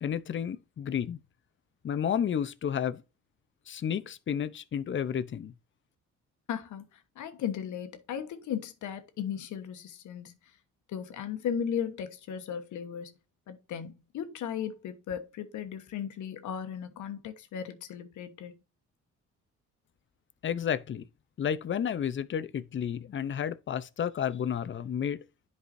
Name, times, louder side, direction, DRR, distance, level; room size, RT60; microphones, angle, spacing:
voice 1, 0.0-1.2 1.8-3.0 3.7-5.5 20.4-21.1 21.4-25.2, left 8 dB, 40° left, 0.6 m, -31 dB
voice 2, 6.5-6.9 7.2-10.3 10.9-13.1 13.5-18.5, left 8 dB, 75° left, 1.2 m, -36 dB
11.0 x 4.8 x 2.6 m
cardioid pair, 90°, 30 cm